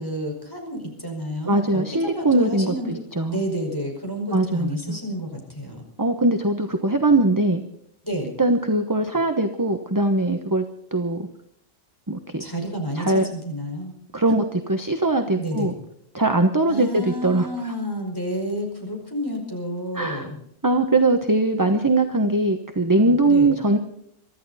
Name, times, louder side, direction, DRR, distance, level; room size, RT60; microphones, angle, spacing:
voice 1, 0.0-3.0 3.3-5.8 8.0-8.3 12.4-13.9 15.4-15.7 16.7-20.4 22.8-23.5, equal, 15° left, 1 dB, 5.1 m, -30 dB
voice 2, 1.4-3.4 4.3-5.0 6.0-7.6 8.4-10.6 10.9-11.3 12.1-12.4 12.9-13.3 14.1-15.7 16.1-17.7 19.9-20.3 20.6-23.8, right 2 dB, 15° right, 6 dB, 1.0 m, -21 dB
24.0 x 13.5 x 4.2 m, 0.70 s
omnidirectional pair, 1.3 m